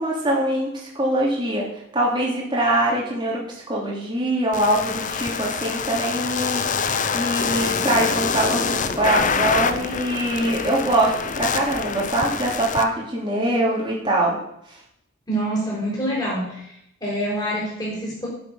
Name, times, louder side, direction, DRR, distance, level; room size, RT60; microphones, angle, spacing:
voice 1, 0.0-1.7 1.9-3.4 3.7-6.7 7.1-14.4 14.7-14.8, right 1 dB, 20° right, -3 dB, 2.7 m, -23 dB
sound 1, 4.5-12.8, left 5 dB, 35° left, 0.7 m, -25 dB
voice 2, 15.3-16.7 17.0-18.3, right 1 dB, 20° left, -5 dB, 5.6 m, -26 dB
11.5 x 6.8 x 7.2 m, 0.74 s
head